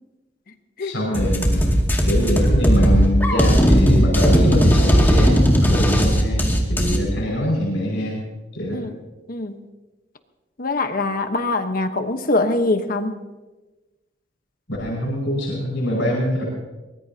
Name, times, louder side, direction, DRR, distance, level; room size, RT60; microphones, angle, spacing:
voice 1, 0.8-1.7 2.0-8.2 8.5-8.8 14.7-16.4, equal, 80° left, -2 dB, 5.6 m, -24 dB
sound 1, 1.1-7.0, equal, 10° left, 2.3 m, -16 dB
voice 2, 9.3-9.6 10.6-13.2, left 2 dB, 50° left, 8 dB, 1.1 m, -23 dB
23.0 x 20.0 x 2.9 m, 1.1 s
head